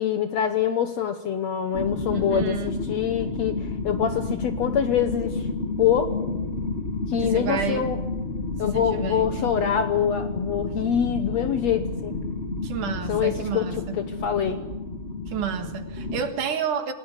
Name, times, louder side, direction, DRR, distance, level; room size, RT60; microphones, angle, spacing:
voice 1, 0.0-5.5 5.8-6.2 7.1-8.0 8.6-12.2 13.1-13.7 13.9-14.6, left 8 dB, 65° left, 9 dB, 1.8 m, -25 dB
sound 1, 1.7-16.2, left 3 dB, 25° left, 1.4 m, -30 dB
voice 2, 2.1-2.8 7.2-7.9 8.6-9.3 12.6-14.0 15.3-16.9, right 8 dB, 65° right, 7 dB, 3.0 m, -30 dB
28.0 x 17.5 x 9.8 m, 1.1 s
omnidirectional pair, 4.2 m